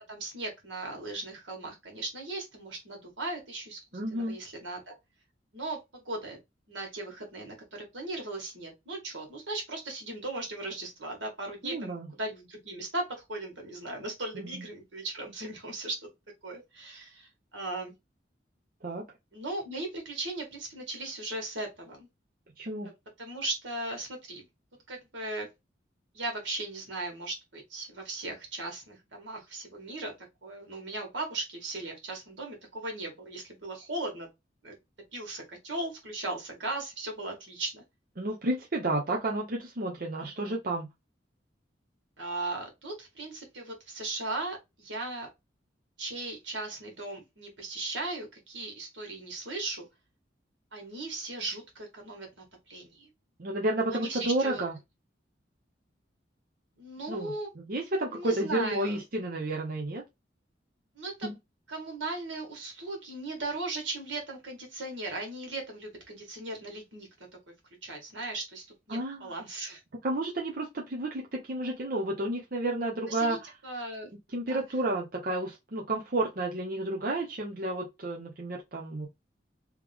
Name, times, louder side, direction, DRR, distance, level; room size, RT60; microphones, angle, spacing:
voice 1, 0.1-4.9 5.5-6.4 6.7-16.0 16.4-17.9 19.3-22.1 22.8-22.9 23.2-24.5 24.9-25.5 26.1-30.1 30.4-34.3 34.6-34.7 35.1-37.8 40.2-40.6 42.2-45.3 46.0-49.9 50.7-53.1 53.9-54.6 56.8-57.5 58.1-59.0 61.0-61.3 61.7-67.1 67.8-69.8 73.1-73.4 73.6-74.1 74.5-74.6, right 2 dB, 80° right, 2.0 m, -37 dB
voice 2, 3.9-4.4 11.6-12.1 14.4-14.5 18.8-19.1 22.6-22.9 38.2-40.9 53.4-54.7 57.1-57.3 57.7-60.0 61.2-61.4 68.9-69.3 70.0-73.5 74.3-79.1, right 2 dB, 50° right, 0.8 m, -31 dB
3.5 x 3.2 x 3.5 m
head